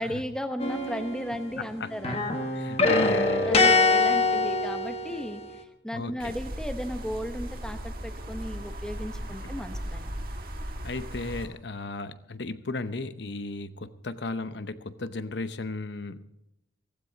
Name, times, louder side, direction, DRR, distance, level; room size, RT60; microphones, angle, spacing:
voice 1, 0.0-2.3 3.0-10.2, equal, 5° left, 7 dB, 1.0 m, -35 dB
sound 1, 0.6-1.7 2.0-5.5, left 3 dB, 30° left, 1.4 m, -24 dB
voice 2, 1.5-2.2 2.5-3.6 5.9-6.3 10.8-16.3, left 3 dB, 65° left, 13 dB, 0.8 m, -35 dB
sound 2, 6.2-11.5, equal, 50° right, 1.6 m, -37 dB
16.0 x 15.0 x 4.0 m, 0.86 s
head